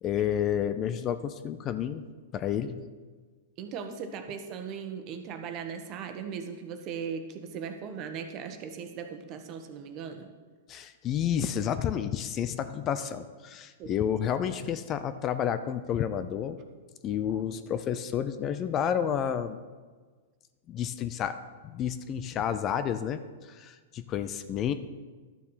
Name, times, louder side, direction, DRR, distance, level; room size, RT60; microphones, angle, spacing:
voice 1, 0.0-2.0 2.3-2.8 10.7-16.6 17.0-19.6 20.7-24.7, left 9 dB, 30° left, 11 dB, 0.6 m, -30 dB
voice 2, 3.6-10.3 13.8-14.0 17.3-17.4, right 6 dB, 40° right, 6 dB, 1.3 m, -38 dB
11.5 x 6.9 x 5.7 m, 1.4 s
hypercardioid pair, 130°, 0 cm